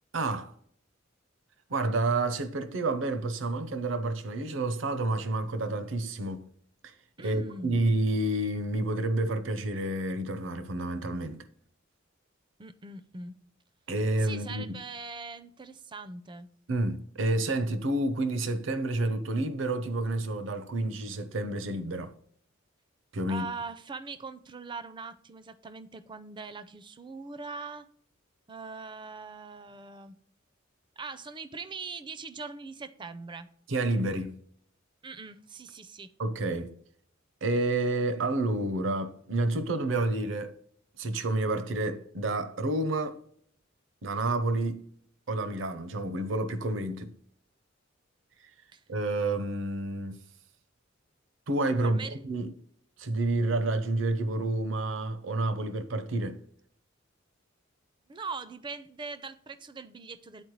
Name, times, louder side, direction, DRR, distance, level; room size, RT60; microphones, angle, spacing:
voice 1, 0.1-0.5 1.7-6.5 6.8-11.5 13.9-14.8 16.7-22.1 23.1-23.5 33.7-34.4 36.2-36.7 37.4-40.6 41.0-43.2 44.0-44.9 45.3-47.1 48.9-50.2 51.5-52.5 53.0-56.4, right 2 dB, 70° right, 0.7 m, -29 dB
voice 2, 7.2-7.8 12.6-13.4 14.2-16.5 23.3-27.9 28.5-30.2 31.0-33.5 35.0-36.1 48.7-48.8 51.8-52.2 58.1-60.4, right 4 dB, 25° right, 0.4 m, -41 dB
9.9 x 4.2 x 3.1 m
head